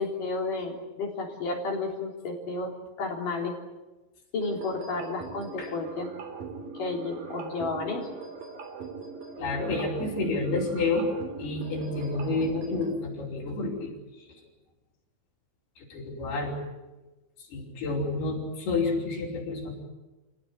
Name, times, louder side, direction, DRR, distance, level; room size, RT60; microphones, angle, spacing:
voice 1, 0.0-3.6 4.3-6.1 6.8-8.1, left 3 dB, 55° left, 0 dB, 5.2 m, -32 dB
sound 1, 4.4-12.9, right 4 dB, 60° right, 5.2 m, -41 dB
voice 2, 9.4-11.1 11.4-13.9 15.8-16.5 17.5-19.7, left 3 dB, 80° left, -4 dB, 7.1 m, -29 dB
28.5 x 17.0 x 9.9 m, 1.1 s
omnidirectional pair, 4.5 m